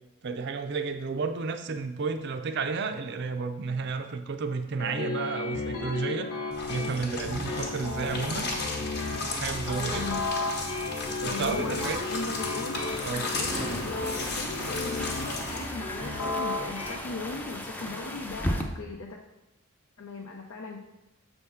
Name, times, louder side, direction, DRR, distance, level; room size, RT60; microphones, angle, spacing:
voice 1, 0.2-6.3 6.7-8.5 9.3-10.1 11.2-12.0 13.0-13.3, right 4 dB, 50° right, 6 dB, 0.4 m, -32 dB
sound 1, 4.8-17.0, left 3 dB, 90° left, 1.3 m, -34 dB
sound 2, 6.5-15.7, left 2 dB, 50° left, 1.0 m, -35 dB
voice 2, 8.0-8.4 9.7-10.2 11.2-12.8 13.1-19.2 20.0-20.8, left 3 dB, 75° left, 0 dB, 0.7 m, -38 dB
sound 3, 12.7-18.6, equal, 10° left, 0.4 m, -36 dB
6.9 x 3.5 x 5.6 m, 0.95 s
head